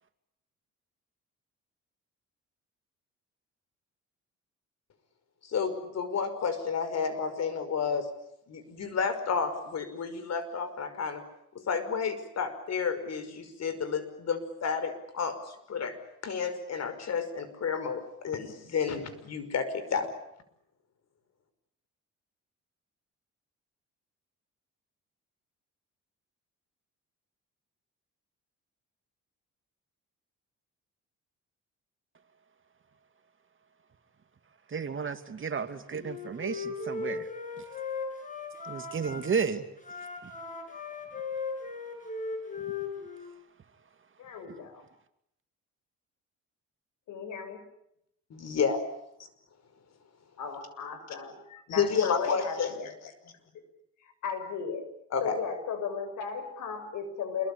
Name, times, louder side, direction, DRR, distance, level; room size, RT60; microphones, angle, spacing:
voice 1, 5.5-8.1 8.5-11.2 11.6-16.0 16.2-20.1 48.3-48.8 51.7-52.7 55.1-55.4, left 6 dB, 60° left, 11 dB, 5.6 m, -31 dB
voice 2, 34.7-37.3 38.6-39.7, right 6 dB, 40° right, 8 dB, 2.6 m, -32 dB
Wind instrument woodwind instrument, 35.9-39.2 39.8-43.3, left 4 dB, 25° left, 7.0 m, -37 dB
voice 3, 44.2-44.8 47.1-47.6 50.4-52.9 54.0-54.8 55.2-57.5, left 6 dB, 80° left, 10 dB, 6.3 m, -36 dB
27.5 x 23.0 x 8.7 m, 0.78 s
cardioid pair, 90°, 30 cm